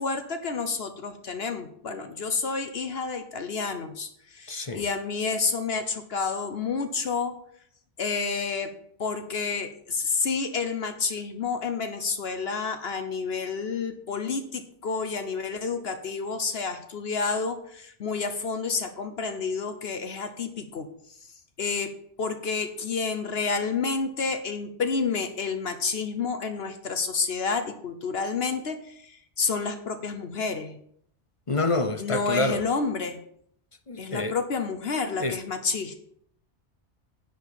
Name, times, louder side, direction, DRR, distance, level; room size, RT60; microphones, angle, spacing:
voice 1, 0.0-7.3 8.0-8.7 9.0-20.9 21.6-21.9 22.2-30.8 32.0-33.2 34.0-36.0, left 4 dB, 60° left, 1.1 m, -29 dB
voice 2, 4.5-4.8 31.5-32.6 33.9-34.4 35.2-35.4, left 2 dB, 35° left, 0.7 m, -27 dB
10.5 x 5.1 x 7.0 m
omnidirectional pair, 1.2 m